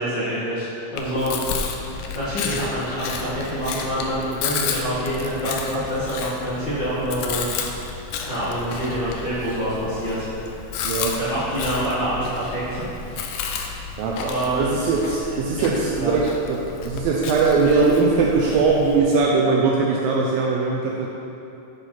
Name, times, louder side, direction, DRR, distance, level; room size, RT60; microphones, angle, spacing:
voice 1, 0.0-1.4 2.1-7.4 8.2-10.5 11.2-13.6 14.2-14.6 15.3-15.7 15.9-16.1, equal, 40° left, -13 dB, 1.7 m, -26 dB
Chewing mastication, 1.0-19.0, left 5 dB, 85° left, 1.9 m, -32 dB
voice 2, 10.8-11.2 14.0-14.2 14.6-21.1, right 4 dB, 80° right, -2 dB, 2.1 m, -20 dB
9.4 x 4.8 x 5.8 m, 2.9 s
omnidirectional pair, 4.7 m